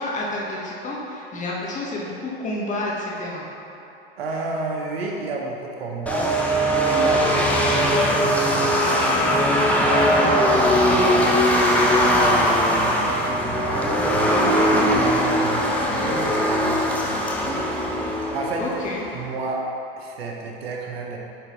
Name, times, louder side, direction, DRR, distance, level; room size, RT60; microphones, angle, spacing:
voice 1, 0.0-3.4 10.0-10.3 14.4-14.7 18.6-19.0, left 2 dB, 25° left, -4 dB, 1.4 m, -30 dB
voice 2, 4.2-6.4 6.9-11.5 12.0-18.7 19.1-19.7 20.0-21.2, right 3 dB, 85° right, 0 dB, 1.0 m, -31 dB
sound 1, 6.1-19.1, equal, 5° left, 0.7 m, -20 dB
9.2 x 3.9 x 3.1 m, 2.9 s
hypercardioid pair, 100°, 30 cm